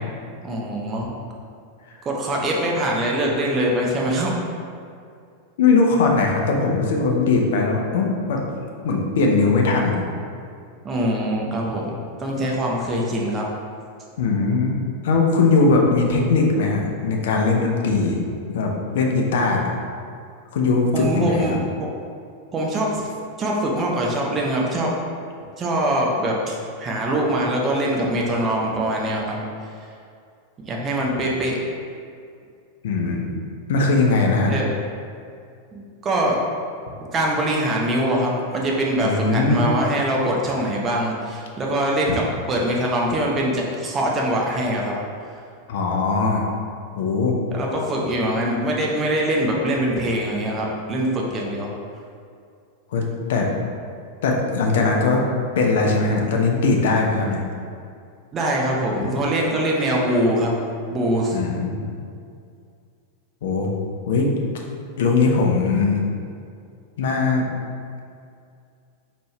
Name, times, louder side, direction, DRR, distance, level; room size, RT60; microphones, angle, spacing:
voice 1, 0.4-1.1 2.0-4.3 10.8-11.9 12.2-13.4 20.9-21.9 22.5-23.1 23.4-25.0 25.6-29.4 30.6-31.6 34.5-34.7 35.7-36.4 37.1-44.9 47.5-51.7 58.3-60.5 60.9-61.4, right 1 dB, 25° right, -2 dB, 0.7 m, -23 dB
voice 2, 5.6-8.4 8.8-10.0 14.2-14.8 15.0-18.2 18.5-19.7 20.5-21.5 32.8-33.3 33.7-34.5 39.0-39.7 42.1-42.2 45.7-46.4 47.0-47.4 52.9-53.5 54.2-55.2 55.6-57.4 61.3-61.9 63.4-63.7 64.1-64.3 65.0-66.0 67.0-67.5, left 3 dB, 55° left, 0 dB, 0.6 m, -20 dB
4.3 x 3.1 x 3.2 m, 2.3 s
figure-of-eight pair, 90°, 0 cm